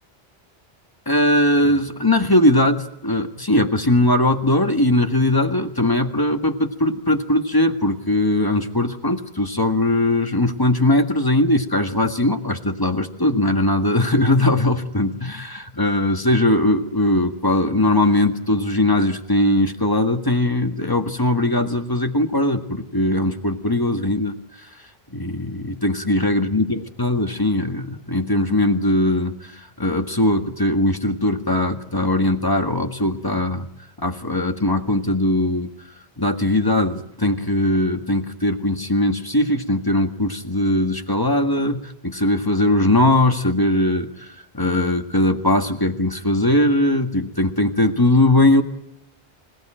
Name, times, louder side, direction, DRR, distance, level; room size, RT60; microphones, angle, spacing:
voice 1, 1.1-24.3 25.1-33.6 34.0-35.7 36.2-48.6, left 1 dB, 20° left, 6 dB, 1.7 m, -20 dB
26.5 x 18.0 x 9.0 m, 0.76 s
omnidirectional pair, 1.0 m